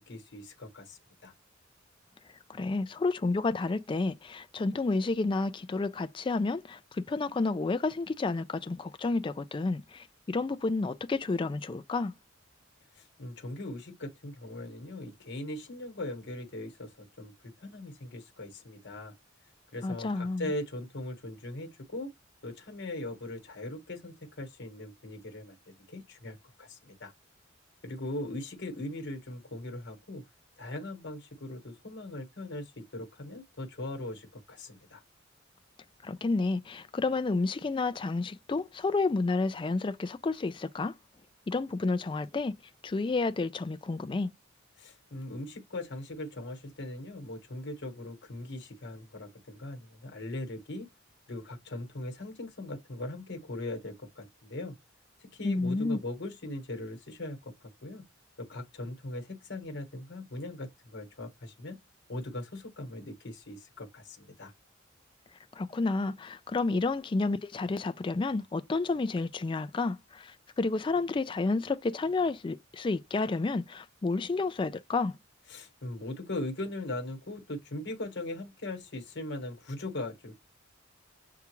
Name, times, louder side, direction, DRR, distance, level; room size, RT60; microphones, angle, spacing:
voice 1, 0.0-1.3 13.0-19.1 19.7-22.1 22.4-27.1 27.8-30.2 30.6-35.0 44.8-50.9 51.3-54.7 55.2-57.5 57.8-58.0 58.4-61.8 62.1-64.5 75.5-80.4, left 1 dB, 60° left, 1.2 m, -40 dB
voice 2, 2.5-6.8 7.1-12.1 19.8-20.5 36.0-40.9 41.5-42.6 42.8-44.3 55.4-56.0 65.6-75.2, left 3 dB, 25° left, 0.3 m, -30 dB
6.8 x 2.3 x 3.0 m
head